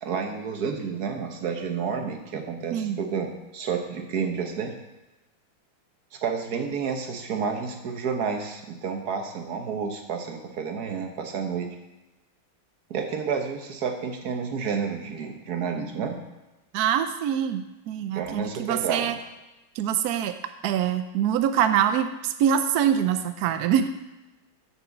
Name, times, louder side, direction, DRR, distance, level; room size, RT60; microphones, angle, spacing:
voice 1, 0.0-4.7 6.2-11.7 12.9-16.2 18.2-19.0, right 6 dB, 55° right, 4 dB, 1.5 m, -30 dB
voice 2, 16.7-19.2 19.7-20.4 20.6-23.9, right 9 dB, 80° right, 9 dB, 0.8 m, -24 dB
7.1 x 6.2 x 7.2 m, 1.0 s
omnidirectional pair, 2.2 m